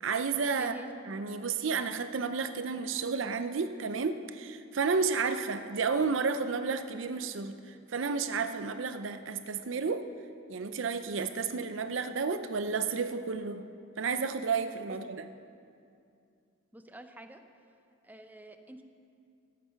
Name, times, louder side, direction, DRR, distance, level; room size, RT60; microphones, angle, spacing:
voice 1, 0.0-0.7 1.1-10.0 10.5-13.6 14.0-15.3, right 5 dB, 80° right, 10 dB, 0.6 m, -31 dB
voice 2, 0.6-0.9 16.7-17.4 18.0-18.8, right 1 dB, 10° right, 7 dB, 0.6 m, -47 dB
13.5 x 8.5 x 5.7 m, 2.5 s
head